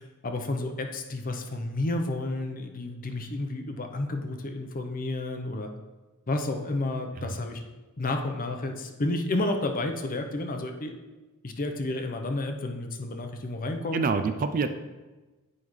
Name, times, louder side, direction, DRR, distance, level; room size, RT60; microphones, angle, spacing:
voice 1, 0.0-5.7 6.3-7.6 8.0-10.9 11.4-14.0, left 2 dB, 40° left, 5 dB, 0.7 m, -31 dB
voice 2, 13.9-14.7, right 4 dB, 40° right, 9 dB, 0.4 m, -27 dB
8.7 x 5.4 x 3.1 m, 1.2 s
head